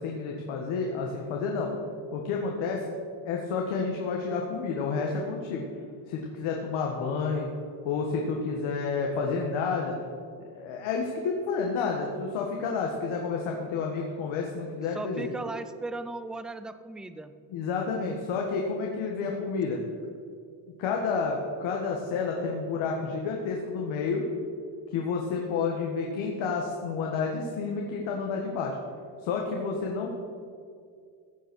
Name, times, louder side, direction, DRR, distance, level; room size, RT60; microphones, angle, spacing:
voice 1, 0.0-1.7 2.1-2.8 3.2-5.6 6.1-7.5 7.8-10.0 10.4-15.3 17.5-19.8 20.8-24.2 24.9-28.8 29.2-30.2, left 5 dB, 85° left, 0 dB, 1.6 m, -30 dB
voice 2, 14.9-17.3, right 2 dB, ahead, 11 dB, 0.4 m, -37 dB
15.0 x 7.1 x 6.2 m, 2.3 s
cardioid pair, 125°, 46 cm